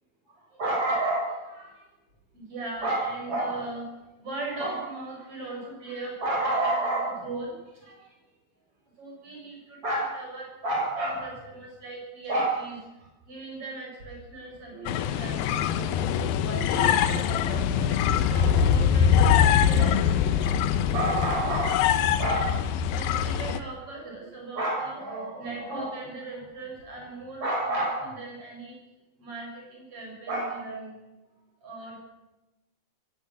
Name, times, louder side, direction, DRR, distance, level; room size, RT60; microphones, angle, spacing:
voice 1, 0.6-1.7 2.3-3.8 4.2-7.5 7.8-8.0 9.0-12.8 13.3-15.9 16.5-19.1 19.6-21.9 22.2-28.7 29.2-30.9 31.6-32.0, right 2 dB, 35° right, -2 dB, 8.6 m, -32 dB
sound 1, 14.9-23.6, left 8 dB, 80° left, 2.7 m, -23 dB
23.5 x 17.5 x 6.8 m, 1.0 s
omnidirectional pair, 4.4 m